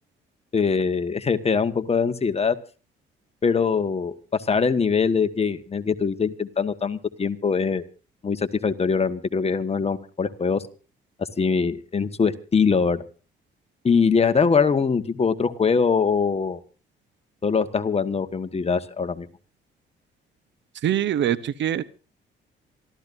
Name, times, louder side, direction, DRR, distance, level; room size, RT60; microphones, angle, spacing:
voice 1, 0.5-2.6 3.4-7.8 8.2-10.6 11.2-13.0 13.8-16.6 17.4-19.3, left 5 dB, 30° left, 10 dB, 1.4 m, -22 dB
voice 2, 20.8-21.8, right 11 dB, 65° right, 17 dB, 0.9 m, -23 dB
27.0 x 13.5 x 2.6 m, 0.35 s
cardioid pair, 90°, 20 cm